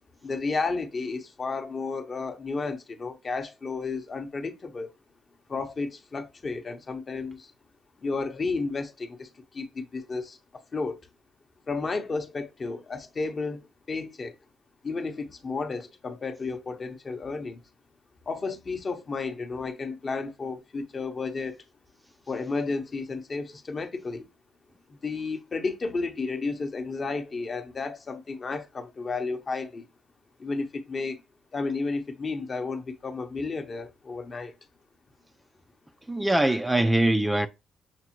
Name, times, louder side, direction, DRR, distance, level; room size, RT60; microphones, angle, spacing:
voice 1, 0.2-4.9 5.5-7.5 8.0-11.1 11.7-14.4 14.8-17.6 18.3-21.6 22.3-24.3 24.9-29.9 30.4-31.2 31.5-34.5, left 4 dB, 40° left, 0.7 m, -32 dB
voice 2, 36.1-37.5, right 1 dB, 10° right, 0.3 m, -22 dB
5.9 x 2.0 x 3.0 m
cardioid pair, 90°, 0 cm